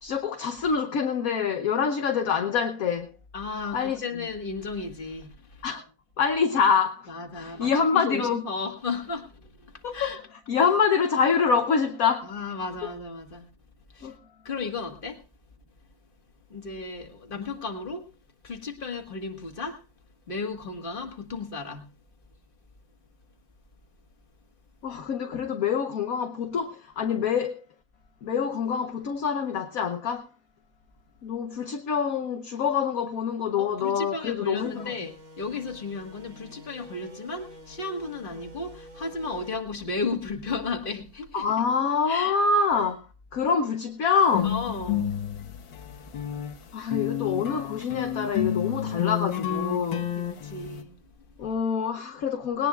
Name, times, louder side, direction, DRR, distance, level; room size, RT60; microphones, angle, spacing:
voice 1, 0.0-3.1 3.7-4.0 5.6-5.8 6.2-8.4 9.8-10.2 10.5-12.3 14.0-14.1 24.8-27.6 28.2-30.3 31.2-34.7 41.3-43.1 43.3-44.5 46.7-50.0 51.4-52.7, left 6 dB, 55° left, 1.1 m, -25 dB
voice 2, 3.3-5.7 7.1-10.2 12.2-13.5 13.9-14.2 14.4-15.2 16.5-18.1 18.4-19.8 20.3-21.8 33.6-41.6 42.1-42.4 44.4-45.2 46.2-46.3 46.6-46.7 50.4-51.3, left 4 dB, 30° left, 1.7 m, -34 dB
sound 1, 34.6-39.6, equal, 45° right, 3.0 m, -48 dB
sound 2, 44.3-46.5 46.9-50.8, left 10 dB, 80° left, 2.0 m, -30 dB
20.0 x 18.0 x 2.4 m
omnidirectional pair, 2.1 m